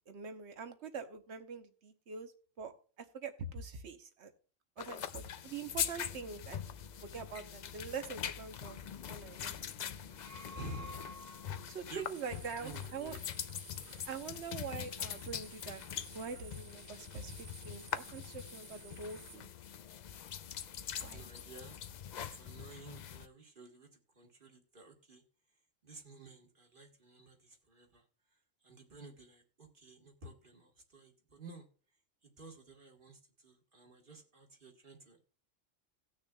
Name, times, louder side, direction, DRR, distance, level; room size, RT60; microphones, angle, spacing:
voice 1, 0.1-2.3 2.6-2.7 3.1-4.3 4.8-6.6 7.0-9.6 11.7-13.2 13.8-15.8 16.1-19.5 21.0-21.2, right 5 dB, 60° right, 8 dB, 1.2 m, -44 dB
sound 1, 4.8-23.3, left 9 dB, 85° left, 0.3 m, -43 dB
sound 2, 10.0-11.9, left 1 dB, 20° right, 0.5 m, -50 dB
voice 2, 10.5-11.5 11.8-12.0 12.3-13.2 20.8-21.8 22.3-23.9 24.2-25.2 25.8-28.0 28.6-31.7 32.2-35.2, right 2 dB, 45° right, 2 dB, 1.8 m, -52 dB
sound 3, 12.0-19.4, right 8 dB, 90° right, 1.2 m, -56 dB
18.0 x 6.3 x 2.3 m, 0.39 s
omnidirectional pair, 1.3 m